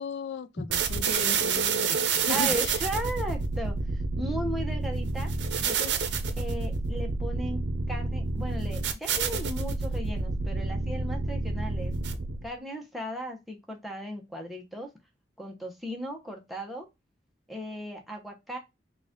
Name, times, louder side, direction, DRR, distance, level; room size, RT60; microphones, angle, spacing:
voice 1, 0.0-2.8, left 6 dB, 75° left, 0.3 m, -36 dB
sound 1, 0.7-12.5, right 4 dB, 75° right, 0.6 m, -29 dB
voice 2, 2.3-5.3 5.6-5.9 6.4-7.6 7.9-11.9 12.4-14.9 15.4-16.9 17.5-18.6, right 1 dB, ahead, 0.8 m, -36 dB
3.9 x 2.4 x 3.6 m
head